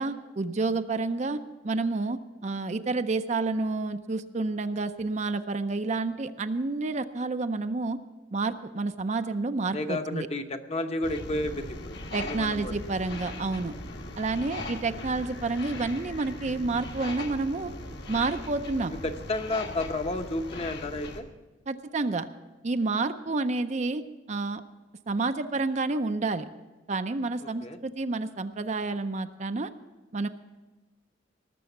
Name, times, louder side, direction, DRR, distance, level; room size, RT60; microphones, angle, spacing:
voice 1, 0.0-8.0 8.3-10.3 12.1-13.7 14.2-17.7 18.1-18.9 21.7-22.3 22.6-24.6 25.1-26.5 26.9-29.7 30.1-30.3, right 3 dB, 40° right, 9 dB, 0.5 m, -29 dB
voice 2, 9.7-12.8 19.0-21.3 27.4-27.8, left 2 dB, 35° left, 7 dB, 0.8 m, -32 dB
sound 1, 11.0-21.2, left 1 dB, 60° left, 1.4 m, -39 dB
19.0 x 6.9 x 7.1 m, 1.2 s
head